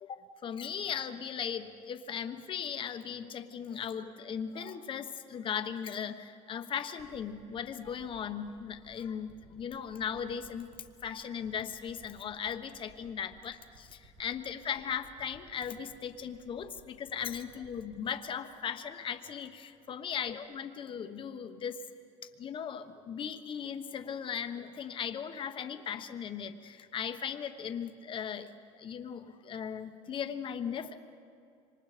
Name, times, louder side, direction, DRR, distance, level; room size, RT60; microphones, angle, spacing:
voice 1, 0.0-10.7 11.0-21.8 22.4-31.0, left 7 dB, 40° left, 8 dB, 1.2 m, -38 dB
sound 1, 7.0-19.7 20.3-20.4, right 2 dB, 70° right, 4.5 m, -59 dB
27.0 x 25.5 x 5.1 m, 2.4 s
cardioid pair, 150°, 14 cm